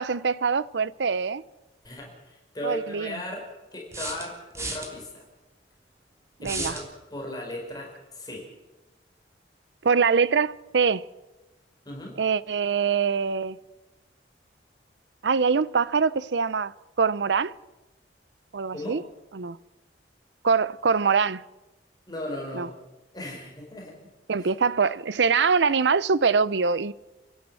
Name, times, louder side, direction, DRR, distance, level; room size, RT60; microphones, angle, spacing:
voice 1, 0.0-1.4 2.6-3.1 6.4-6.7 9.8-11.0 12.2-13.6 15.2-17.5 18.5-19.0 19.3-19.6 20.4-21.4 22.5-22.7 24.3-26.9, right 5 dB, 80° right, 0.6 m, -23 dB
voice 2, 1.8-3.5 3.7-5.2 6.4-6.8 7.1-8.5 11.8-12.2 18.7-19.0 22.1-22.7 23.1-24.0 24.4-24.5, left 1 dB, 25° left, 4.9 m, -36 dB
sound 1, 1.8-1.9 3.9-4.9 6.4-6.9, right 2 dB, 15° right, 3.2 m, -33 dB
30.0 x 12.0 x 7.6 m
head